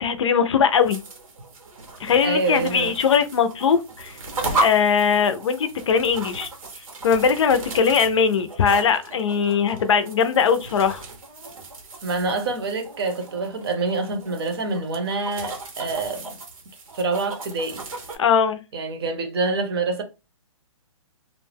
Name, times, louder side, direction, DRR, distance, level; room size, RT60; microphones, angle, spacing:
voice 1, 0.0-1.0 2.0-4.2 4.5-6.5 7.0-11.0 18.2-18.6, left 6 dB, 60° left, 0.5 m, -20 dB
sound 1, 0.7-18.2, right 2 dB, 90° right, 1.0 m, -35 dB
voice 2, 2.2-2.9 12.0-16.3 16.9-17.8 18.7-20.0, right 3 dB, 45° right, 0.7 m, -26 dB
2.5 x 2.1 x 3.3 m
hypercardioid pair, 160°, 17 cm